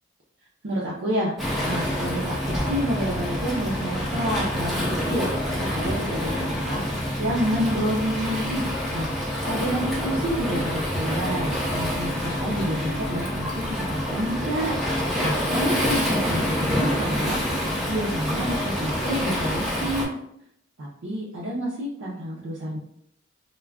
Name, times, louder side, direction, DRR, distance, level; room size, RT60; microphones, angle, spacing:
voice 1, 0.6-1.3 1.7-5.3 5.6-6.8 7.2-8.7 8.9-14.8 15.2-17.4 17.9-20.1 20.8-22.8, equal, 70° right, -6 dB, 0.5 m, -29 dB
Waves surf, 1.4-20.0, equal, ahead, 0.7 m, -27 dB
2.3 x 2.1 x 3.4 m, 0.73 s
head